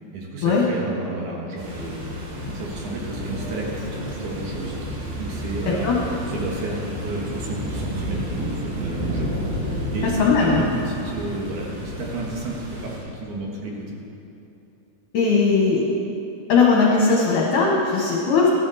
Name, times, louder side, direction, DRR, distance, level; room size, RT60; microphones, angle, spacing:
voice 1, 0.1-2.0 2.5-4.8 5.2-5.9 6.3-9.3 9.9-14.0, right 2 dB, 60° right, -2 dB, 2.7 m, -32 dB
sound 1, 1.6-13.0, equal, 75° right, 4.3 m, -31 dB
voice 2, 10.2-10.6 15.1-15.8 16.5-18.5, left 4 dB, 65° left, -3 dB, 2.4 m, -18 dB
14.5 x 13.0 x 4.1 m, 2.9 s
omnidirectional pair, 4.6 m